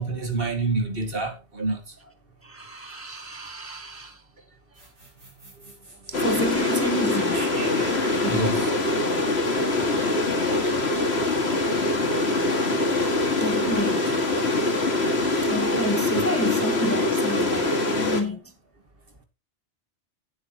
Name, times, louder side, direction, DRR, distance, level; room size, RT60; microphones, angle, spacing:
voice 1, 0.0-1.8 8.3-8.7 16.1-16.2, right 2 dB, 55° right, 2.4 m, -27 dB
voice 2, 2.4-4.2 6.1-7.5 8.2-8.5 13.4-14.2 15.4-18.5, equal, 10° left, 1.2 m, -30 dB
sound 1, 4.7-11.1, right 2 dB, 80° right, 6.1 m, -42 dB
sound 2, 6.1-18.2, left 2 dB, 65° left, 2.4 m, -23 dB
16.5 x 8.4 x 3.0 m
omnidirectional pair, 1.2 m